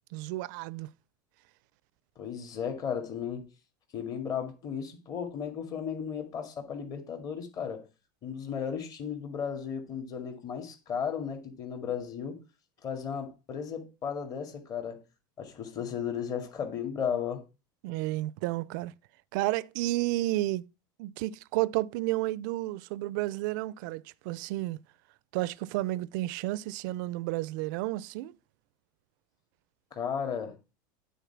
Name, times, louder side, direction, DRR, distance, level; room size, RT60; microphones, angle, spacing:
voice 1, 0.1-0.9 17.8-18.9 19.3-20.6 21.0-24.8 25.3-28.3, right 17 dB, 70° right, 0.4 m, -31 dB
voice 2, 2.2-3.5 3.9-7.9 8.2-12.4 12.8-15.0 15.4-17.4 29.9-30.6, left 7 dB, 35° left, 2.2 m, -35 dB
9.2 x 4.4 x 5.9 m
supercardioid pair, 130°, 11 cm